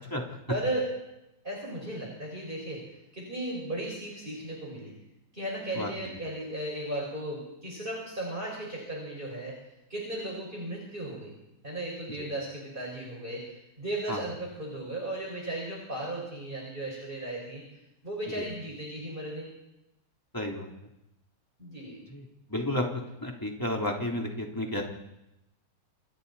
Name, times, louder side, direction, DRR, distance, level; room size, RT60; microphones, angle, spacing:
voice 1, 0.5-0.9 1.4-2.8 3.1-4.9 5.3-9.5 9.9-11.3 11.6-13.4 13.8-17.6 18.0-19.5 21.6-22.0, right 1 dB, 25° right, -3 dB, 5.9 m, -35 dB
voice 2, 5.7-6.2 12.2-12.3 14.1-14.2 18.3-18.4 20.3-20.7 22.1-22.2 22.5-22.8 23.2-24.8, left 1 dB, 10° left, -1 dB, 3.6 m, -32 dB
28.5 x 27.5 x 4.3 m, 0.90 s
omnidirectional pair, 2.3 m